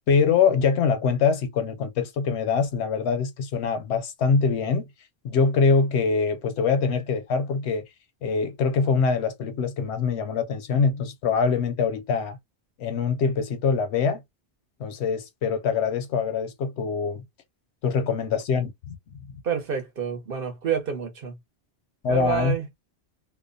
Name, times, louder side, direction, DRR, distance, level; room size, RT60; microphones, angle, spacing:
voice 1, 0.1-4.9 5.2-7.8 8.2-12.4 12.8-14.2 14.8-17.2 17.8-19.3 22.0-22.6, left 5 dB, 80° left, 0.9 m, -24 dB
voice 2, 19.4-21.3 22.0-22.7, right 8 dB, 60° right, 1.0 m, -28 dB
2.6 x 2.1 x 2.5 m
omnidirectional pair, 1.1 m